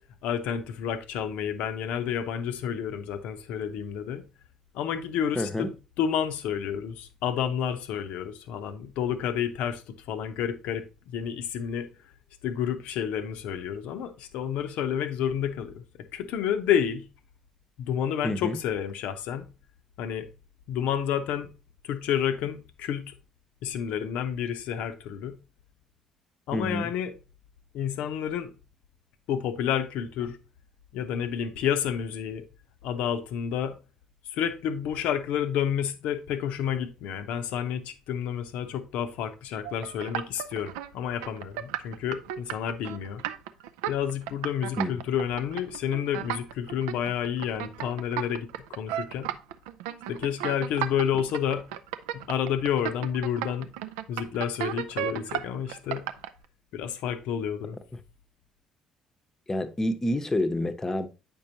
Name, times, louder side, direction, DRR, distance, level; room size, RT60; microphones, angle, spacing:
voice 1, 0.2-4.2 4.7-11.9 12.4-15.8 16.1-17.1 17.8-19.5 20.0-20.3 20.7-21.5 21.8-23.1 23.6-25.4 26.5-27.1 27.7-28.5 29.3-30.4 30.9-32.4 32.8-33.7 34.3-43.2 43.9-49.3 50.1-51.7 52.1-53.7 54.1-56.1 56.7-57.8, left 9 dB, 60° left, 0.7 m, -30 dB
voice 2, 5.4-5.7 18.2-18.6 26.5-26.9 44.8-44.9 59.5-61.1, left 1 dB, 20° left, 0.8 m, -28 dB
sound 1, 39.6-40.9 41.1-56.3, right 12 dB, 70° right, 0.4 m, -34 dB
8.6 x 5.4 x 2.8 m
figure-of-eight pair, 50°, 2 cm